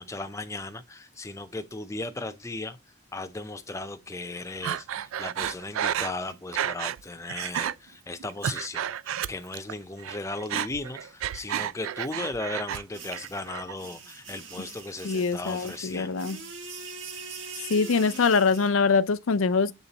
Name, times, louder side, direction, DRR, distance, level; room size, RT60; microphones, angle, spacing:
voice 1, 0.0-2.8 3.1-16.2, left 2 dB, 15° left, 0.6 m, -36 dB
Breathing, 4.6-7.0 7.3-7.7 8.2-9.7 10.0-12.8 13.1-13.7, right 9 dB, 90° right, 0.4 m, -31 dB
sound 1, 12.9-18.7, right 4 dB, 65° right, 1.5 m, -42 dB
voice 2, 15.0-16.4 17.7-19.7, left 4 dB, 85° left, 0.6 m, -23 dB
7.2 x 3.7 x 4.1 m
head